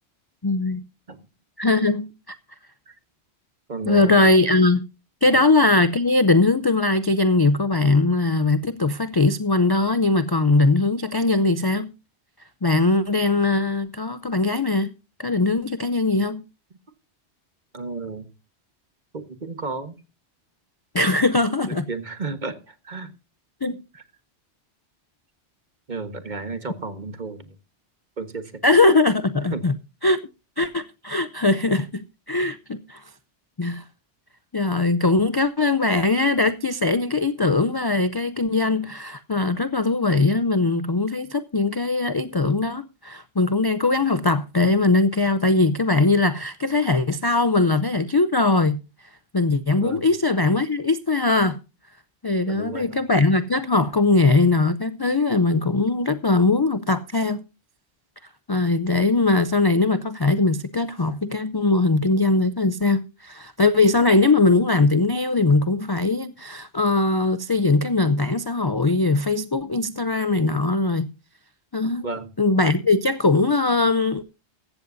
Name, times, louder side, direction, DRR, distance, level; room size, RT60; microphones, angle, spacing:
voice 1, 0.4-0.8 1.6-2.4 3.9-4.8 5.2-11.9 12.6-14.9 15.2-16.4 20.9-21.9 23.6-23.8 28.6-29.7 30.0-30.2 30.6-33.0 33.6-33.8 34.5-48.8 49.3-51.6 52.2-57.4 58.5-71.1 71.7-72.0 72.4-74.2, left 3 dB, 35° left, 0.4 m, -20 dB
voice 2, 3.7-4.3 5.3-5.4 17.7-18.3 19.1-20.0 21.7-23.1 23.9-24.0 25.9-27.6 28.2-28.6 29.5-29.6 49.8-50.0 52.5-52.9 72.0-72.3, right 3 dB, 40° right, 1.5 m, -33 dB
15.0 x 13.5 x 2.6 m
omnidirectional pair, 1.2 m